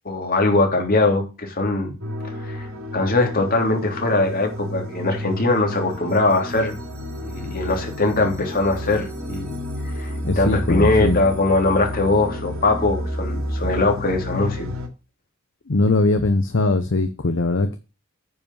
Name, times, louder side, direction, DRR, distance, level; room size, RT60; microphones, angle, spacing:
voice 1, 0.0-1.9 2.2-2.7 2.9-6.7 7.2-9.5 10.0-14.7, left 2 dB, 40° left, 3.0 m, -21 dB
sound 1, 2.0-14.9, left 1 dB, 70° right, 3.6 m, -30 dB
voice 2, 10.2-11.2 15.7-17.8, left 2 dB, 55° left, 0.8 m, -20 dB
9.6 x 5.2 x 7.2 m
head